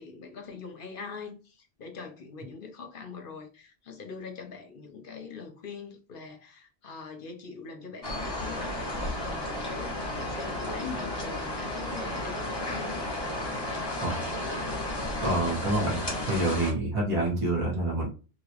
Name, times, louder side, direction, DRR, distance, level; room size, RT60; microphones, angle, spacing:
voice 1, 0.0-13.0, left 5 dB, 60° left, 0.9 m, -43 dB
sound 1, 8.0-16.7, left 1 dB, 25° left, 1.3 m, -33 dB
voice 2, 15.2-16.0 16.3-18.1, right 2 dB, 30° right, 1.3 m, -27 dB
3.0 x 2.8 x 2.8 m
omnidirectional pair, 1.1 m